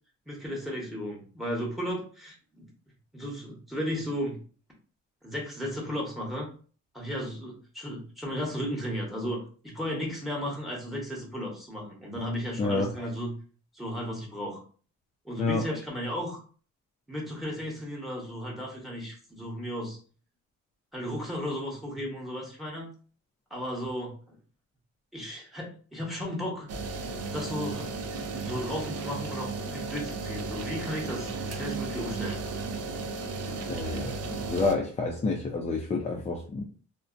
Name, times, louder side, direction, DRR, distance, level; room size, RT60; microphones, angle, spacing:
voice 1, 0.3-2.7 3.1-4.4 5.2-6.5 6.9-9.4 9.6-13.3 13.7-14.6 15.2-16.4 17.1-20.0 20.9-22.9 23.5-24.4 25.1-26.7 27.3-27.9 28.2-32.4, equal, ahead, -2 dB, 1.0 m, -34 dB
sound 1, 26.7-34.7, right 4 dB, 55° right, 0.5 m, -34 dB
voice 2, 33.7-36.6, left 3 dB, 25° left, 1 dB, 0.4 m, -29 dB
2.5 x 2.1 x 2.5 m, 0.41 s
cardioid pair, 90°, 30 cm